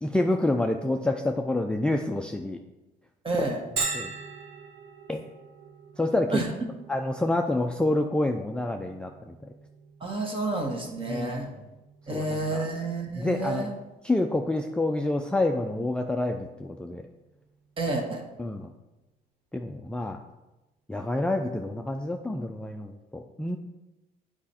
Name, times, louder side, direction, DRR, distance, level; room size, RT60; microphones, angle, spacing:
voice 1, 0.0-2.6 3.4-3.5 3.9-4.1 5.1-5.2 6.0-6.4 6.9-9.3 11.1-11.4 12.1-12.6 13.1-13.7 14.0-17.0 18.4-18.7 19.5-20.2 20.9-23.6, left 2 dB, 5° left, 3 dB, 0.4 m, -28 dB
voice 2, 3.2-3.6 6.3-6.5 10.0-11.5 12.1-13.7 17.8-18.2, right 2 dB, 30° right, 2 dB, 1.6 m, -30 dB
Bell, 3.8-19.2, right 4 dB, 75° right, 1.0 m, -43 dB
8.5 x 5.0 x 4.3 m, 1.0 s
cardioid pair, 110°, 17 cm